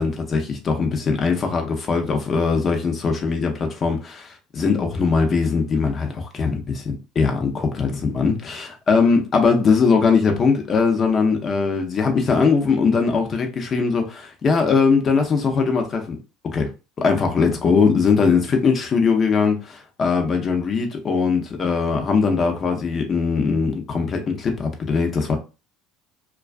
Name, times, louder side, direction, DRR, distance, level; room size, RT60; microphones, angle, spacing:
voice 1, 0.0-16.2 16.4-16.7 17.0-25.4, left 5 dB, 40° left, 0.7 m, -20 dB
2.3 x 2.3 x 2.4 m
supercardioid pair, 90°, 0 cm